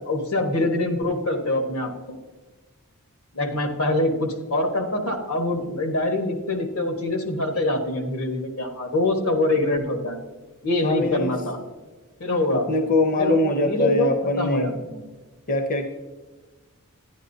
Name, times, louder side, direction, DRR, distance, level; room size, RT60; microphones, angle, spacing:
voice 1, 0.0-2.2 3.3-10.2 10.6-11.6 12.2-12.7 13.2-13.4 13.6-14.1 14.4-15.0, left 1 dB, 85° left, 3 dB, 1.4 m, -24 dB
voice 2, 10.8-11.3 12.5-14.7 15.5-15.9, left 2 dB, 40° left, 5 dB, 0.6 m, -23 dB
10.5 x 10.5 x 2.7 m, 1.3 s
head